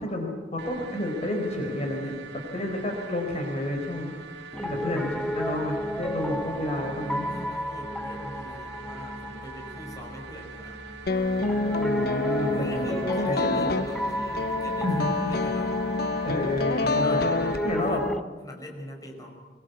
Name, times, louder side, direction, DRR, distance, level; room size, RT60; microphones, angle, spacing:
voice 1, 0.0-2.1 2.5-4.1 4.6-7.2 11.8-12.8 13.3-13.7 14.8-15.3 15.9-17.3 17.6-18.0, left 1 dB, 40° left, 2 dB, 4.6 m, -30 dB
sound 1, 0.6-17.6, right 4 dB, 75° right, 2.0 m, -44 dB
voice 2, 1.5-2.3 7.2-10.8 12.4-15.9 17.0-18.0 18.4-19.4, equal, 20° left, 1 dB, 5.2 m, -42 dB
Piano, 4.5-18.2, equal, 5° left, 0.8 m, -33 dB
sound 2, 11.1-18.2, left 3 dB, 60° left, 0.9 m, -28 dB
23.5 x 22.5 x 8.2 m, 1.4 s
head